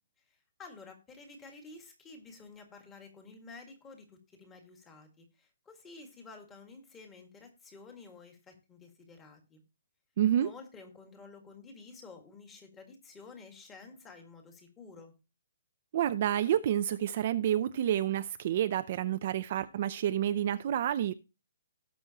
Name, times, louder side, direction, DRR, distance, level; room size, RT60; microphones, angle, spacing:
voice 1, 0.6-9.6 10.3-15.1, left 3 dB, 10° left, 1.8 m, -51 dB
voice 2, 10.2-10.5 15.9-21.1, right 11 dB, 35° right, 0.5 m, -29 dB
18.0 x 6.2 x 2.9 m
hypercardioid pair, 175°, 0 cm